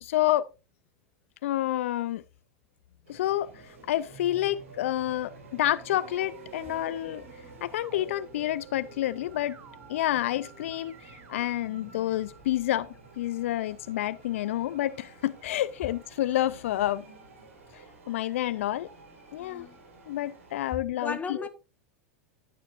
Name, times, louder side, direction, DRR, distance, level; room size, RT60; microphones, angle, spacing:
voice 1, 0.0-0.5 1.4-2.2 3.1-7.2 7.6-9.6 9.9-12.9 13.2-17.0 17.7-18.9 19.3-19.7 20.1-21.5, left 13 dB, 70° left, 0.4 m, -29 dB
sound 1, 3.0-20.8, right 3 dB, 80° right, 3.8 m, -50 dB
sound 2, 4.1-12.7, right 6 dB, 30° right, 1.5 m, -54 dB
voice 2, 19.4-19.8 20.9-21.5, left 4 dB, 20° left, 1.5 m, -36 dB
12.0 x 9.4 x 2.5 m
hypercardioid pair, 95°, 7 cm